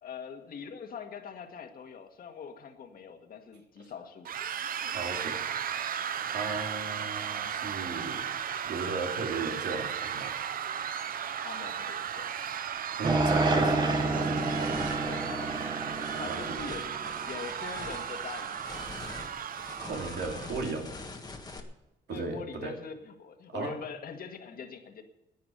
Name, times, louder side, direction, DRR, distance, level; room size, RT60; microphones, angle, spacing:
voice 1, 0.0-4.3 11.4-12.3 15.1-15.7 16.2-19.1 22.1-25.0, left 6 dB, 55° left, 5 dB, 1.9 m, -43 dB
sound 1, 4.3-20.6, right 8 dB, 55° right, 0.7 m, -35 dB
voice 2, 4.9-5.4 6.3-8.2 8.7-10.3 13.0-15.1 16.1-16.4 19.8-20.9 22.1-22.7 23.5-23.7, right 4 dB, 70° right, 2 dB, 2.9 m, -36 dB
sound 2, 12.8-12.9 13.4-21.6, left 3 dB, 20° left, 1.6 m, -45 dB
sound 3, 13.0-17.4, right 2 dB, 25° right, 1.4 m, -29 dB
11.0 x 9.3 x 9.2 m, 0.95 s
cardioid pair, 125°, 18 cm